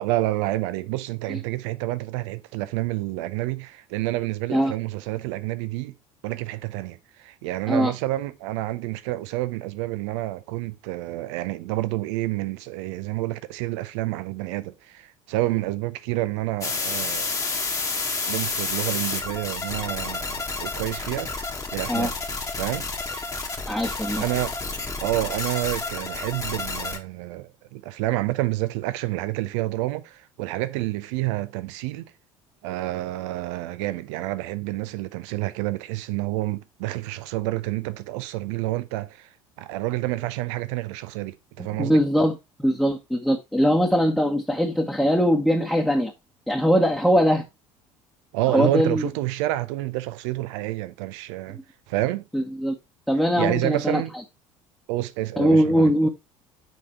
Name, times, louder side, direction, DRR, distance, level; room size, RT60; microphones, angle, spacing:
voice 1, 0.0-5.9 6.2-17.3 18.3-21.3 21.7-22.2 22.6-23.3 24.2-24.6 25.0-32.1 32.6-39.3 39.6-42.0 48.3-51.6 51.9-52.2 53.4-54.1 54.9-55.9, right 17 dB, 60° right, 0.7 m, -29 dB
sound 1, 16.6-27.0, left 3 dB, 20° left, 1.6 m, -30 dB
voice 2, 23.7-24.2 41.8-46.1 46.5-47.4 48.5-49.1 52.3-52.7 53.1-54.0 55.4-56.1, equal, ahead, 1.3 m, -21 dB
6.5 x 5.0 x 4.3 m
figure-of-eight pair, 65°, 17 cm